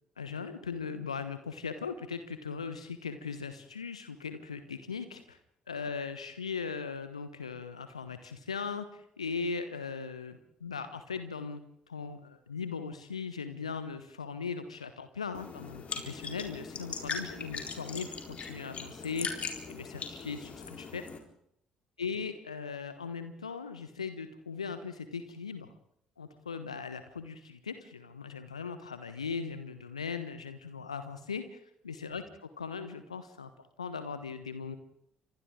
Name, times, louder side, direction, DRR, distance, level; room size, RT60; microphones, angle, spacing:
voice 1, 0.2-5.4 5.7-18.1 18.5-21.0 22.0-25.7 26.2-33.5 33.8-34.8, left 5 dB, 85° left, 10 dB, 1.2 m, -39 dB
sound 1, 15.3-21.2, left 5 dB, 40° left, 4.1 m, -40 dB
30.0 x 26.0 x 3.8 m, 0.73 s
figure-of-eight pair, 50°, 3 cm